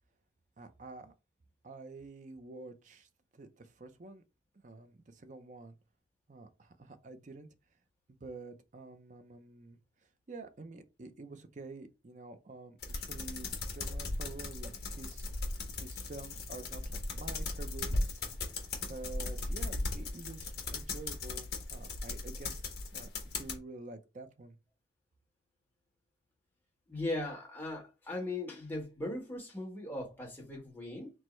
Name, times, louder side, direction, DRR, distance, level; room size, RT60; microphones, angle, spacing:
voice 1, 0.6-1.1 1.6-4.2 4.5-5.8 6.3-7.5 8.2-9.8 10.3-15.3 15.8-18.2 18.9-22.6 22.9-24.6, right 3 dB, 40° right, 0.5 m, -48 dB
sound 1, 12.8-23.6, left 2 dB, 60° left, 1.1 m, -37 dB
voice 2, 26.9-31.1, left 2 dB, 10° left, 1.2 m, -38 dB
6.1 x 2.1 x 3.1 m
head